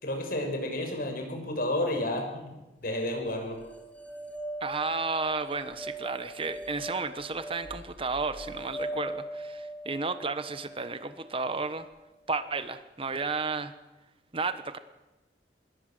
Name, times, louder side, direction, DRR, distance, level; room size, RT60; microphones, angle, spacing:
voice 1, 0.0-2.4 2.8-3.6, left 1 dB, 55° left, 4 dB, 6.7 m, -31 dB
sound 1, 2.9-12.1, right 1 dB, 10° left, 2.5 m, -41 dB
voice 2, 4.6-11.9 12.3-13.7 14.3-14.8, right 4 dB, 30° right, 11 dB, 1.2 m, -32 dB
26.0 x 21.5 x 7.9 m, 1.0 s
head